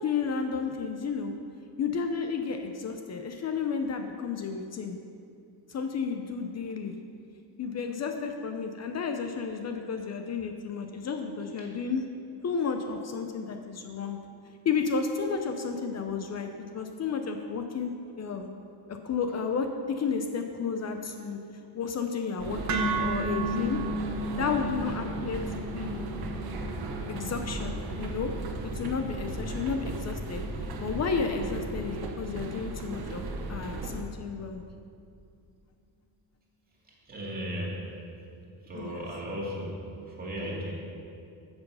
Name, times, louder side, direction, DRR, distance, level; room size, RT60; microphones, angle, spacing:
voice 1, 0.0-1.3 1.8-5.0 5.7-6.9 7.6-12.0 12.4-14.2 14.6-18.5 18.9-21.4 21.7-23.8 24.3-26.0 27.1-28.3 28.7-30.4 30.8-33.2 33.5-34.6 38.7-39.0, left 5 dB, 40° left, 5 dB, 0.6 m, -32 dB
sound 1, 22.4-34.0, right 2 dB, 65° right, 1.2 m, -36 dB
sound 2, 22.7-30.8, right 2 dB, 45° right, 0.9 m, -35 dB
voice 2, 36.8-38.1 38.4-40.7, equal, 20° right, -4 dB, 2.4 m, -36 dB
13.0 x 7.1 x 5.5 m, 2.5 s
cardioid pair, 175°, 40 cm